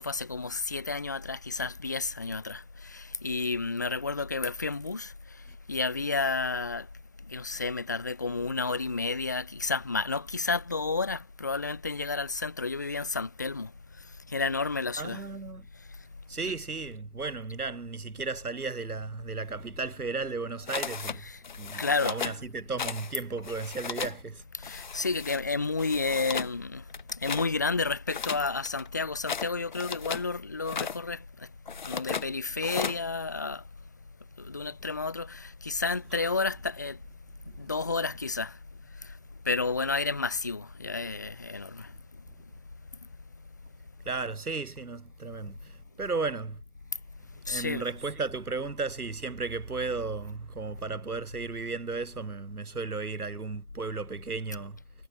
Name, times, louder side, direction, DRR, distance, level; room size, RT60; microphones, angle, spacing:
voice 1, 0.0-5.1 5.7-6.9 7.3-13.7 14.3-15.2 16.4-16.5 21.3-21.4 21.8-22.2 24.6-26.8 27.1-31.5 31.8-33.6 34.4-37.0 37.6-38.6 39.0-39.1 39.4-41.9 47.4-47.8, left 4 dB, 10° left, 1.0 m, -31 dB
voice 2, 5.9-6.2 15.0-15.6 16.3-21.3 21.6-24.4 36.1-36.3 37.6-37.8 44.0-46.6 47.5-54.8, right 4 dB, 75° right, 4.5 m, -35 dB
sound 1, 20.7-21.2 21.4-22.4 22.8-23.1 23.4-24.2 24.6-25.4 25.8-26.5 26.9-27.5 28.1-30.3 30.6-31.0 31.7-32.3 32.6-33.0, left 6 dB, 30° left, 2.3 m, -35 dB
figure-of-eight pair, 165°, 45 cm